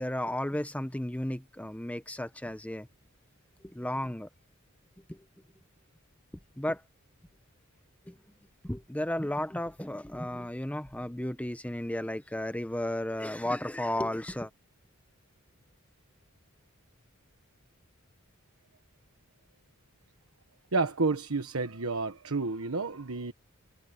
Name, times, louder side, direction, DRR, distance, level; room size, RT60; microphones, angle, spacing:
voice 1, 0.0-2.9 3.6-4.3 5.1-5.3 6.6-6.8 8.1-8.2 8.6-14.5, left 1 dB, 5° left, 1.0 m, -33 dB
voice 2, 20.7-23.3, right 3 dB, 80° right, 1.3 m, -30 dB
head